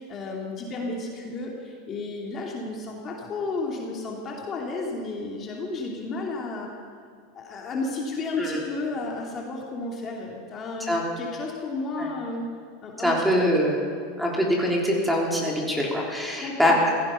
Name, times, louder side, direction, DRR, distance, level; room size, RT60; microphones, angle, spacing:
voice 1, 0.0-6.7 7.3-12.4 12.8-13.5 16.4-16.8, left 3 dB, 30° left, -1 dB, 2.6 m, -32 dB
voice 2, 13.0-13.8 14.2-16.9, equal, ahead, -2 dB, 3.4 m, -23 dB
16.5 x 15.0 x 5.7 m, 2.2 s
supercardioid pair, 125°, 0 cm